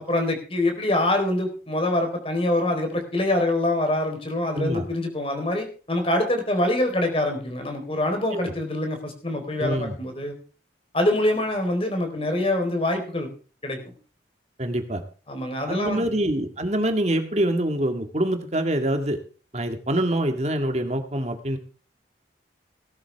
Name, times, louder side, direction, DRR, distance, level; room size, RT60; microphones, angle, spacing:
voice 1, 0.0-10.3 10.9-13.3 13.6-13.9 15.3-16.1, left 1 dB, 30° left, 5 dB, 4.1 m, -25 dB
voice 2, 9.6-10.0 14.6-15.0 15.7-19.2 19.5-21.6, right 1 dB, 35° right, 6 dB, 2.0 m, -25 dB
18.0 x 12.5 x 3.5 m, 0.38 s
head